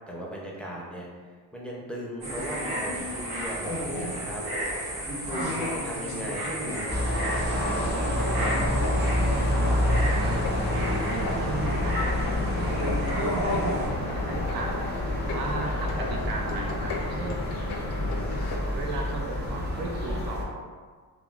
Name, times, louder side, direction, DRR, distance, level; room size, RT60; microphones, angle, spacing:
voice 1, 0.1-1.2 1.5-4.4 5.2-8.1, equal, 5° left, -4 dB, 0.5 m, -37 dB
sound 1, 2.2-13.9, equal, 85° right, 1.5 m, -33 dB
sound 2, 6.9-20.4, left 1 dB, 25° right, 0.7 m, -28 dB
sound 3, 8.3-18.6, left 3 dB, 75° left, 0.5 m, -35 dB
voice 2, 9.0-9.7 10.2-10.4 11.0-12.2 12.6-14.7 15.2-17.4 18.6-20.6, right 3 dB, 70° right, 2 dB, 0.6 m, -36 dB
3.5 x 2.2 x 2.4 m, 1.5 s
cardioid pair, 110°, 39 cm